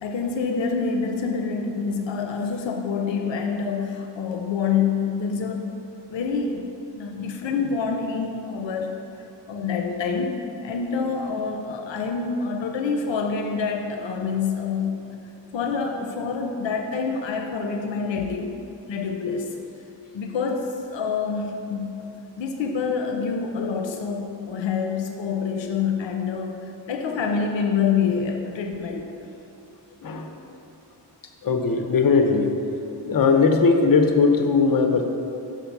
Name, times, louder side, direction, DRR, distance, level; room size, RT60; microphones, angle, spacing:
voice 1, 0.0-5.7 6.1-6.6 6.9-9.0 9.5-15.1 15.5-18.6 18.9-19.6 20.1-29.1, left 5 dB, 85° left, 4 dB, 0.6 m, -27 dB
voice 2, 31.4-32.5 33.1-35.0, left 4 dB, 50° left, 4 dB, 0.8 m, -19 dB
6.7 x 4.5 x 5.9 m, 2.7 s
wide cardioid pair, 85°, 44 cm